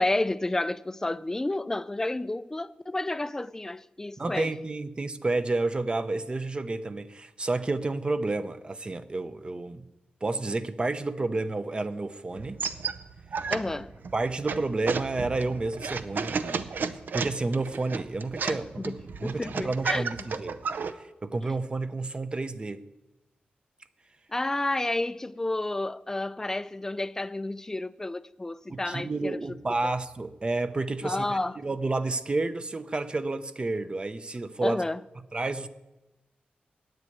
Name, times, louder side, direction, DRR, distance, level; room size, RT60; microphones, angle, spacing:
voice 1, 0.0-4.5 13.5-13.9 18.4-20.1 21.4-21.5 24.3-29.6 31.0-31.6 34.6-35.0, left 2 dB, 15° left, 0.3 m, -31 dB
voice 2, 4.2-9.9 10.2-12.6 14.1-20.6 20.9-22.9 28.7-34.8 35.3-35.7, right 3 dB, 30° right, 0.6 m, -30 dB
sound 1, 12.4-20.9, right 5 dB, 70° right, 0.6 m, -33 dB
9.5 x 7.8 x 8.6 m
wide cardioid pair, 110°, 3 cm